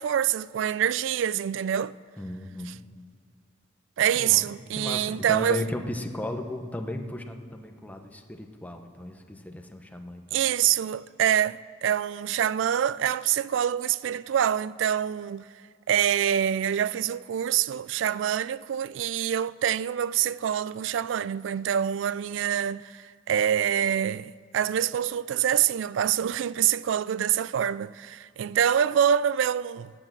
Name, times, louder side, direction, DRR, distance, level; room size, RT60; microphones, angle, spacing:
voice 1, 0.0-1.9 4.0-5.6 10.3-15.5 15.9-29.9, right 9 dB, 80° right, 0.3 m, -26 dB
voice 2, 2.2-2.8 4.1-4.5 4.8-10.4, left 1 dB, 10° left, 0.9 m, -35 dB
10.5 x 9.0 x 7.5 m
head